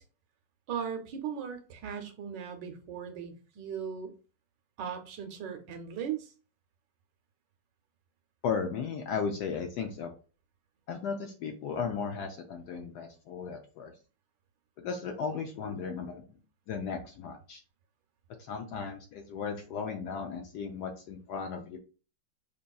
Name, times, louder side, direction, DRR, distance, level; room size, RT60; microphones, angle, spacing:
voice 1, 0.7-4.1 4.8-6.3, right 7 dB, 70° right, 6 dB, 1.2 m, -38 dB
voice 2, 8.4-10.1 10.9-13.9 14.8-16.3 16.7-17.6 18.4-21.8, left 6 dB, 70° left, 4 dB, 1.0 m, -35 dB
5.2 x 2.9 x 2.3 m, 0.35 s
omnidirectional pair, 2.2 m